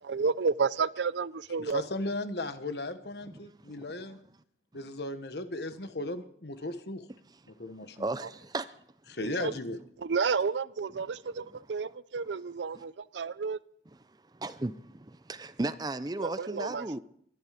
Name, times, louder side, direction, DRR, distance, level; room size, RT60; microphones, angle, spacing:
voice 1, 0.0-1.8 9.2-9.5 10.0-13.6 16.2-17.0, right 5 dB, 80° right, 0.5 m, -31 dB
voice 2, 1.6-4.2 4.7-7.1 7.6-8.1 9.1-9.8, left 2 dB, 65° left, 1.2 m, -36 dB
voice 3, 3.3-3.8 8.0-8.7 9.5-9.6 11.4-11.6 12.7-12.8 14.3-17.0, right 2 dB, 20° right, 0.5 m, -36 dB
23.5 x 11.0 x 5.1 m
head